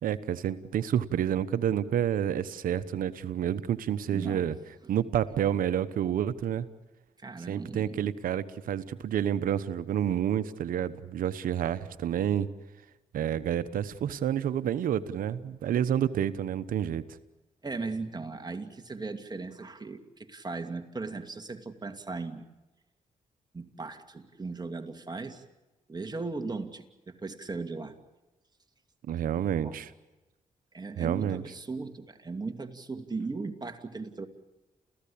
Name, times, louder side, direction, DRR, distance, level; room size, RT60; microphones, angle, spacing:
voice 1, 0.0-4.5 4.9-6.7 7.5-12.5 13.1-17.0 29.1-29.9 31.0-31.4, right 10 dB, 85° right, 13 dB, 1.0 m, -29 dB
voice 2, 4.1-4.5 7.2-8.1 17.6-22.4 23.5-25.4 25.9-27.9 29.6-29.8 30.7-34.3, right 3 dB, 30° right, 6 dB, 2.5 m, -37 dB
29.0 x 15.5 x 8.6 m, 1.1 s
cardioid pair, 60°, 14 cm